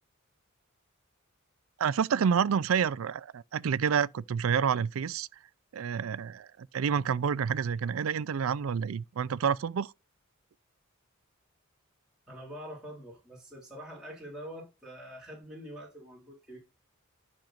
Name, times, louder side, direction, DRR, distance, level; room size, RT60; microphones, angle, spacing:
voice 1, 1.8-5.3 5.7-9.9, right 7 dB, 75° right, 0.4 m, -28 dB
voice 2, 12.3-16.6, equal, 5° right, 3.2 m, -45 dB
10.5 x 6.5 x 2.5 m
head